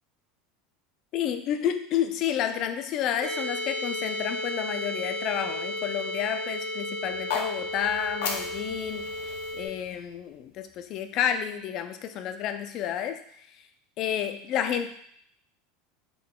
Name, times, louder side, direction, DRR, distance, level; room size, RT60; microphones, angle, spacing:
voice 1, 1.1-13.2 14.0-14.9, left 9 dB, 45° left, 7 dB, 0.3 m, -30 dB
sound 1, 3.2-9.7, left 1 dB, 50° right, 0.9 m, -33 dB
sound 2, 7.1-11.2, left 5 dB, 85° left, 0.6 m, -37 dB
3.7 x 3.6 x 2.3 m, 0.67 s
supercardioid pair, 135°, 0 cm